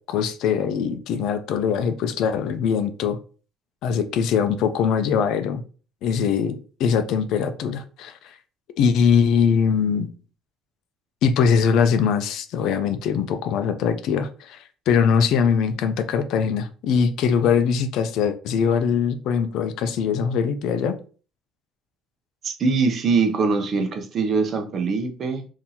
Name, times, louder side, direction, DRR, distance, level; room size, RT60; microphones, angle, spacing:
voice 1, 0.1-3.2 3.8-5.6 6.0-8.4 8.8-10.1 11.2-20.9, left 6 dB, 70° left, 0.5 m, -22 dB
voice 2, 22.4-25.5, right 4 dB, 45° right, 0.7 m, -22 dB
3.8 x 2.7 x 2.8 m
cardioid pair, 135°, 0 cm